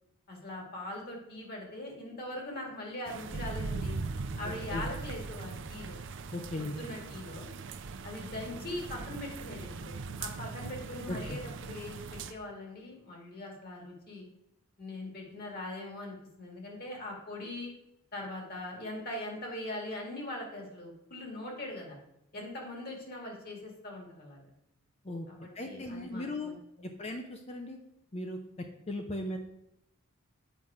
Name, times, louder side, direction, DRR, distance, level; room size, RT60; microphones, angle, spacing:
voice 1, 0.3-4.0 4.4-6.0 6.6-7.5 8.0-14.3 14.8-17.7 18.1-22.0 22.3-24.5 25.3-26.9, left 1 dB, 45° left, 1 dB, 2.0 m, -41 dB
sound 1, 3.1-12.3, right 4 dB, 55° right, 0.5 m, -40 dB
voice 2, 6.3-6.8 11.1-11.4 25.0-25.3 25.6-26.5 27.0-27.8 28.1-28.4 28.9-29.4, left 1 dB, 30° left, 4 dB, 0.6 m, -37 dB
8.0 x 5.7 x 4.8 m, 0.81 s
head